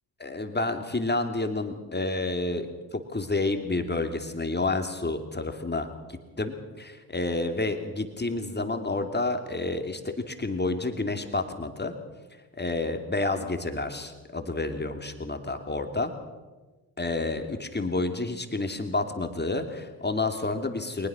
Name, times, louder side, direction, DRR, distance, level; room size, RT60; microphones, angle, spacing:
voice 1, 0.2-12.0 12.6-16.1 17.0-21.1, left 2 dB, 20° left, 6 dB, 2.9 m, -30 dB
21.0 x 20.0 x 6.3 m, 1.2 s
supercardioid pair, 55°, 47 cm